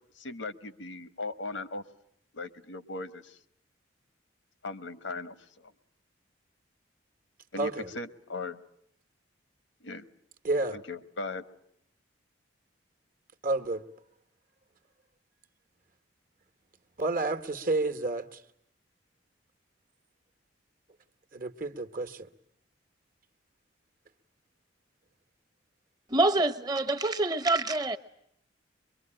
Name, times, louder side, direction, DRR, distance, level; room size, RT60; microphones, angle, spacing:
voice 1, 0.2-1.8 2.3-3.4 4.6-5.7 7.5-8.6 9.8-10.1 10.7-11.4, left 3 dB, 80° left, 1.3 m, -38 dB
voice 2, 7.6-7.9 10.4-10.8 13.4-13.8 17.0-18.4 21.3-22.3, right 2 dB, 45° right, 1.2 m, -30 dB
voice 3, 26.1-28.0, right 2 dB, 20° right, 1.0 m, -26 dB
23.5 x 23.5 x 8.9 m
head